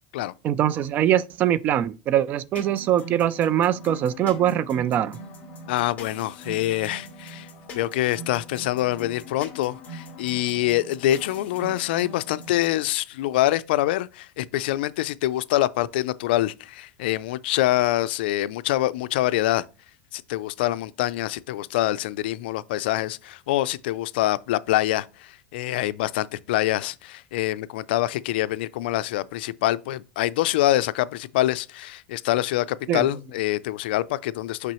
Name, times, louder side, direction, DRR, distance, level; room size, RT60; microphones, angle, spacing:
voice 1, 0.4-5.2 32.9-33.0, right 11 dB, 30° right, 0.3 m, -22 dB
sound 1, 2.6-12.8, equal, 30° left, 1.9 m, -42 dB
voice 2, 5.7-7.5 7.7-19.6 20.1-34.7, left 15 dB, 75° left, 0.4 m, -25 dB
5.9 x 5.5 x 3.0 m
supercardioid pair, 150°, 6 cm